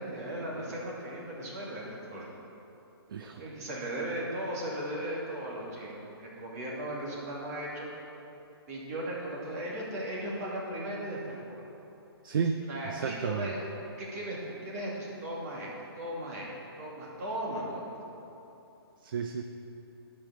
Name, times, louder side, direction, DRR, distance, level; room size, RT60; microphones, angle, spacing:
voice 1, 0.0-2.3 3.4-7.9 8.7-11.6 12.7-13.7 14.0-15.7 16.0-16.5 16.8-17.9, right 1 dB, 40° right, -4 dB, 2.6 m, -37 dB
voice 2, 3.1-3.4 12.2-12.6 12.8-13.5 19.0-19.4, right 6 dB, 55° right, 6 dB, 0.6 m, -32 dB
11.0 x 5.4 x 7.0 m, 2.9 s
hypercardioid pair, 160°, 14 cm